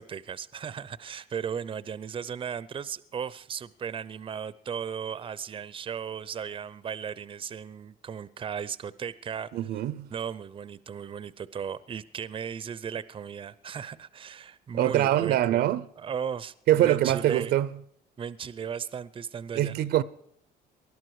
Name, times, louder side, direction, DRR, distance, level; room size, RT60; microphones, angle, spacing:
voice 1, 0.0-9.5 10.1-15.6 16.0-17.5 18.2-19.8, right 7 dB, 30° right, 0.6 m, -36 dB
voice 2, 9.5-10.1 14.8-15.9 16.7-17.7 19.5-20.0, right 13 dB, 70° right, 0.7 m, -23 dB
20.0 x 12.0 x 4.8 m
cardioid pair, 110°, 17 cm